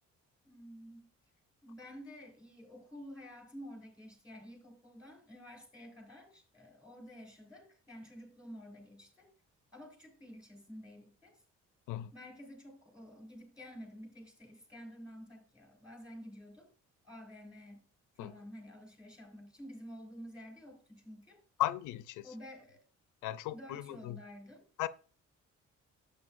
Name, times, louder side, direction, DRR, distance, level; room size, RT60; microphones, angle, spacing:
voice 1, 0.4-1.1 1.6-9.3 9.7-11.4 12.1-16.7 17.0-17.9 18.2-21.4 22.2-22.8 23.5-24.7, equal, 5° right, 4.5 m, -50 dB
voice 2, 21.6-22.2 23.2-24.2 24.8-24.9, left 14 dB, 90° left, 0.5 m, -36 dB
11.0 x 8.2 x 2.5 m
cardioid pair, 90°, 30 cm